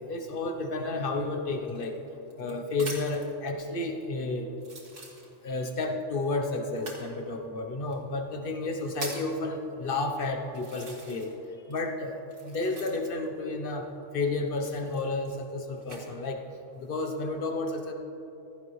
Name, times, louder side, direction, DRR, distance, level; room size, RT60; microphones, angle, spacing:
voice 1, 0.1-2.0 2.4-4.5 5.4-11.3 11.7-12.1 12.4-13.9 14.1-16.4 16.8-17.9, left 2 dB, 45° left, 5 dB, 1.0 m, -31 dB
sound 1, 1.6-3.3 4.0-4.1 4.6-5.6 6.7-7.1 7.9-8.0 8.6-9.4 10.0-10.1 10.5-11.4 11.7-13.2 14.5-16.0 16.7-17.2, right 2 dB, 65° right, 2.4 m, -43 dB
15.5 x 13.5 x 3.2 m, 3.0 s
omnidirectional pair, 1.4 m